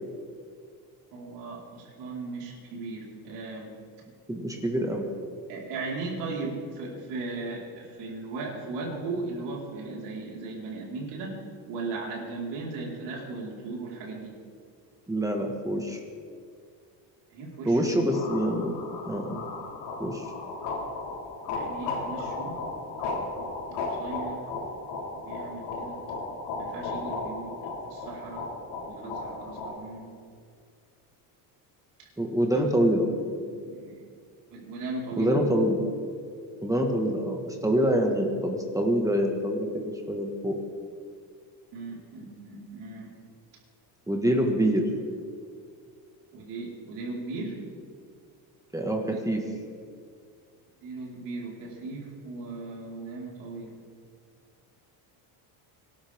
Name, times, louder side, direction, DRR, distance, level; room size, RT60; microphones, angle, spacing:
voice 1, 1.1-3.7 5.5-11.4 11.7-14.3 17.3-17.9 21.5-22.6 23.7-24.4 25.1-26.0 26.6-27.6 27.9-28.5 28.8-30.1 32.0-32.1 33.3-34.0 34.5-35.4 41.7-43.1 46.3-47.6 49.1-49.2 50.8-53.8, right 3 dB, 80° right, -3 dB, 4.7 m, -37 dB
voice 2, 4.3-5.0 15.1-16.0 17.6-18.8 19.0-19.5 20.0-20.3 32.2-33.1 35.2-35.8 36.6-40.6 44.1-44.8 48.7-49.4, equal, 10° right, 2 dB, 1.7 m, -25 dB
sound 1, 18.1-29.7, left 3 dB, 85° left, 4.5 m, -35 dB
25.5 x 12.5 x 3.7 m, 2.2 s
cardioid pair, 125°, 41 cm